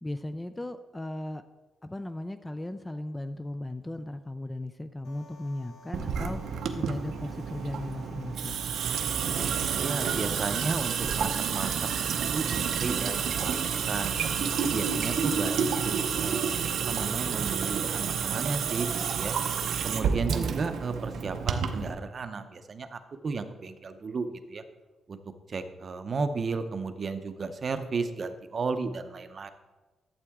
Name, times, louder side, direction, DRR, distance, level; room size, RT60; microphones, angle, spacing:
voice 1, 0.0-1.4 1.8-6.4 6.8-8.6, left 1 dB, 10° left, 10 dB, 0.3 m, -36 dB
sound 1, 5.0-16.2, left 2 dB, 85° left, 1.9 m, -53 dB
Water tap faucet / Sink (filling or washing) / Drip, 5.9-21.9, right 7 dB, 70° right, 0.7 m, -29 dB
voice 2, 9.8-11.8 12.1-13.5 13.9-14.1 14.6-16.6 16.9-19.4 19.8-24.6 25.1-25.2 25.5-29.5, right 4 dB, 35° right, 9 dB, 0.6 m, -34 dB
sound 2, 14.7-16.9 17.4-17.9 18.8-19.3, left 2 dB, 35° left, 1.4 m, -52 dB
11.5 x 7.9 x 3.6 m, 1.2 s
wide cardioid pair, 165°, 0 cm